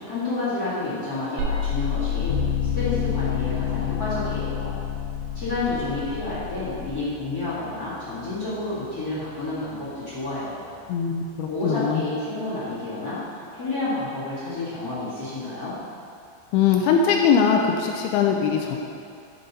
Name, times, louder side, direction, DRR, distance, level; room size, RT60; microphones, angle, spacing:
voice 1, 0.0-2.4 2.7-4.8 5.3-10.7 11.4-15.7, left 2 dB, 30° left, -12 dB, 2.0 m, -30 dB
sound 1, 1.4-6.9, left 7 dB, 75° right, 2.8 m, -30 dB
sound 2, 2.3-9.4, left 7 dB, 70° left, 2.4 m, -32 dB
voice 2, 10.9-12.0 16.5-18.8, left 6 dB, 90° left, 1 dB, 2.2 m, -21 dB
12.0 x 5.6 x 4.1 m, 2.5 s
omnidirectional pair, 5.1 m